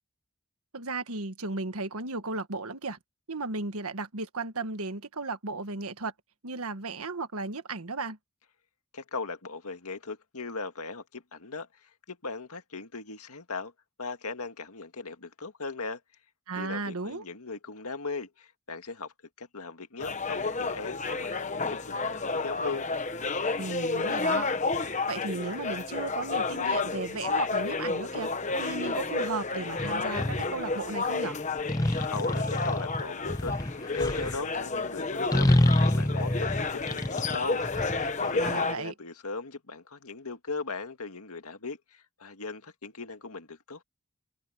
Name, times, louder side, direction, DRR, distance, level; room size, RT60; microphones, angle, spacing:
voice 1, 0.7-3.0 3.3-6.1 6.4-8.2 16.5-17.2 23.6-24.5 25.1-28.3 28.6-31.4 38.4-38.9, right 3 dB, 80° right, 1.6 m, -35 dB
voice 2, 8.9-13.7 14.0-16.0 16.6-22.9 32.1-33.5 33.9-35.5 35.8-37.7 38.2-43.8, left 4 dB, 85° left, 2.0 m, -38 dB
sound 1, 20.0-38.7, left 3 dB, 30° left, 1.1 m, -31 dB
sound 2, 29.8-30.5 31.7-34.4 35.3-38.5, left 1 dB, 15° left, 0.7 m, -27 dB
head